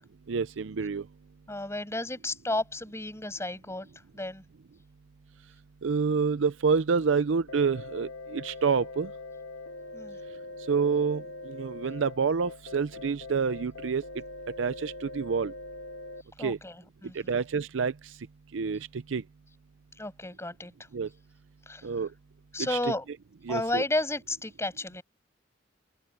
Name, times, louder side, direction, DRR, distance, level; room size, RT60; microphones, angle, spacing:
voice 1, 0.3-1.1 5.8-9.1 10.7-14.0 14.6-15.5 16.4-16.6 17.1-18.1 18.5-19.2 20.9-21.1 21.8-22.1 22.7-22.8 23.5-23.8, right 5 dB, 75° right, 0.5 m, -28 dB
voice 2, 1.5-3.9 4.1-4.4 9.9-10.2 16.4-17.3 20.0-20.7 21.7-21.9 22.5-23.0 23.5-25.0, left 2 dB, 15° left, 6.7 m, -32 dB
sound 1, 7.5-16.2, left 2 dB, 80° left, 1.8 m, -43 dB
head